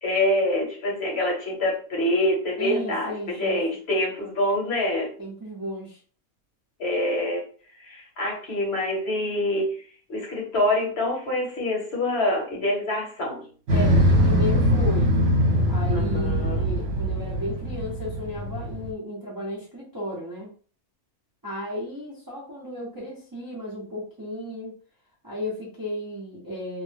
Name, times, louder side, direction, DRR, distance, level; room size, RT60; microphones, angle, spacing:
voice 1, 0.0-5.1 6.8-7.4 7.8-13.5 15.9-16.6, left 1 dB, 50° left, -2 dB, 1.0 m, -26 dB
voice 2, 2.6-3.6 5.2-6.0 13.7-15.1 15.7-20.5 21.4-24.8 25.2-26.8, left 1 dB, 30° right, -5 dB, 0.4 m, -34 dB
Motorcycle, 13.7-18.9, equal, 60° right, 1.1 m, -22 dB
2.6 x 2.0 x 3.2 m, 0.42 s
omnidirectional pair, 1.5 m